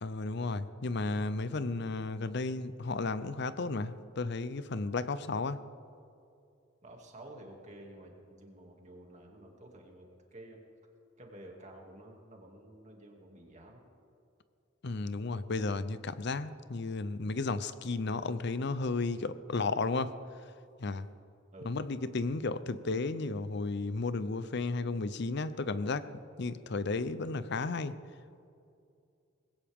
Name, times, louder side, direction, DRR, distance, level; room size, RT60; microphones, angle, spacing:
voice 1, 0.0-5.6 14.8-20.2 20.8-21.1 21.6-28.0, left 3 dB, 60° left, 14 dB, 0.6 m, -33 dB
voice 2, 6.8-10.6 11.2-13.9 21.5-21.8 26.9-27.0, right 1 dB, 40° right, 0 dB, 2.5 m, -51 dB
20.5 x 17.0 x 3.6 m, 2.5 s
head